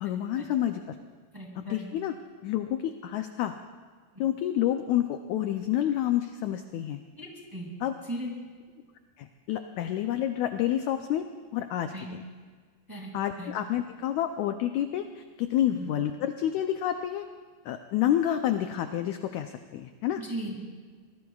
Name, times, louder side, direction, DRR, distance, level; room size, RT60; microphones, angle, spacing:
voice 1, 0.0-0.8 1.6-2.2 2.4-3.5 4.2-7.0 7.8-8.0 9.2-11.3 11.5-12.2 13.1-17.3 17.7-20.2, left 11 dB, 85° left, 7 dB, 1.6 m, -29 dB
voice 2, 1.3-1.8 7.2-7.7 8.1-8.3 11.9-12.1 12.9-13.1 13.4-13.5 15.7-15.9 20.2-20.6, right 1 dB, 10° right, -2 dB, 1.8 m, -37 dB
25.0 x 19.0 x 2.4 m, 1.6 s
omnidirectional pair, 4.0 m